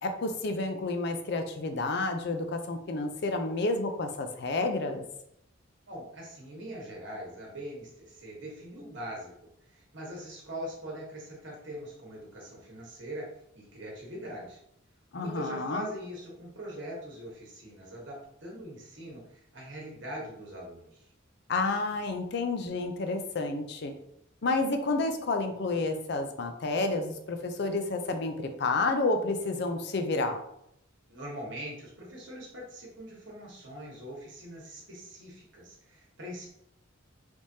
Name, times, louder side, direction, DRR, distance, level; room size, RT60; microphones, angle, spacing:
voice 1, 0.0-5.0 15.1-15.9 21.5-23.9 24.4-30.4, left 3 dB, 55° left, 6 dB, 0.4 m, -30 dB
voice 2, 5.9-9.3 9.7-13.2 13.5-14.6 15.1-21.0 31.1-36.5, right 1 dB, 60° right, -3 dB, 1.2 m, -42 dB
3.4 x 3.2 x 2.7 m, 0.77 s
head